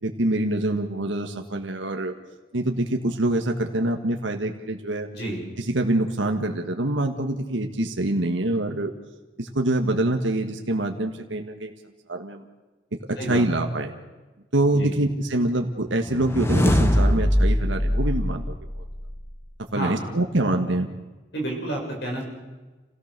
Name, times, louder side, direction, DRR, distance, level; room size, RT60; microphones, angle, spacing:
voice 1, 0.0-2.1 2.5-5.1 5.6-8.9 9.4-11.7 12.1-12.4 13.1-13.9 14.5-18.4 19.7-20.9, right 1 dB, 80° right, 3 dB, 1.6 m, -25 dB
sound 1, 16.0-19.3, equal, 15° left, 1.1 m, -22 dB
voice 2, 19.7-20.1 21.3-22.2, right 1 dB, 65° left, 1 dB, 7.3 m, -30 dB
28.5 x 17.5 x 6.7 m, 1.2 s
head